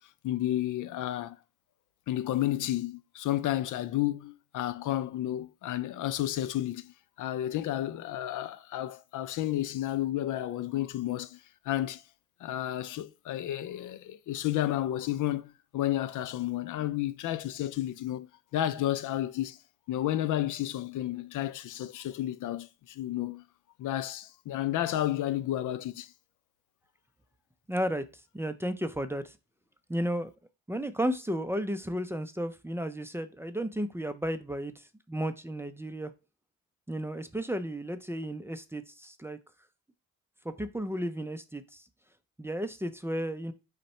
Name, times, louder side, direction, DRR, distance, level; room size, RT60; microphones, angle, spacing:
voice 1, 0.2-1.4 2.1-12.0 12.4-18.3 18.5-19.6 19.9-23.4 23.8-26.1, left 13 dB, 70° left, 0.5 m, -31 dB
voice 2, 27.7-29.4 29.9-30.3 30.7-36.1 36.9-39.4 40.4-41.8 42.4-43.5, equal, 10° right, 0.4 m, -33 dB
5.3 x 2.2 x 4.2 m
cardioid pair, 80°, 32 cm